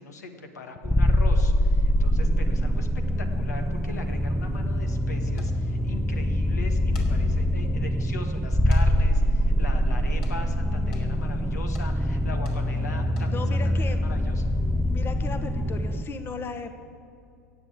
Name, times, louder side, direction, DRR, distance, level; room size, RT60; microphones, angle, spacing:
voice 1, 0.0-2.9 3.2-14.5, left 3 dB, 80° left, 5 dB, 1.6 m, -40 dB
sound 1, 0.8-16.0, equal, ahead, 0.4 m, -24 dB
sound 2, 5.4-5.5 6.7-7.1 7.7-7.8 8.7-8.8 9.1-9.2 10.2-10.4 10.9-11.1 11.7-11.9 12.4-12.6 13.0-13.3, left 4 dB, 50° left, 3.0 m, -47 dB
voice 2, 13.2-14.0 14.9-16.7, left 4 dB, 25° left, 8 dB, 1.0 m, -36 dB
16.0 x 8.2 x 8.7 m, 2.5 s
figure-of-eight pair, 85°, 9 cm